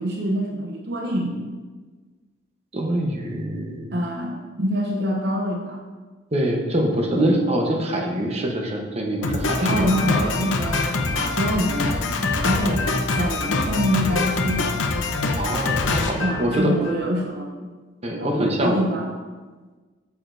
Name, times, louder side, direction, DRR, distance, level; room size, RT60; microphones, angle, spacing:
voice 1, 0.0-1.5 3.9-5.8 9.6-14.8 16.2-17.5 18.1-19.1, equal, 60° right, 0 dB, 0.8 m, -25 dB
voice 2, 2.7-3.9 6.3-9.8 15.4-16.7 18.0-18.8, right 1 dB, 35° right, 0 dB, 1.0 m, -24 dB
Drum kit, 9.2-17.0, left 3 dB, 85° left, 0.8 m, -24 dB
9.0 x 6.8 x 2.7 m, 1.4 s
head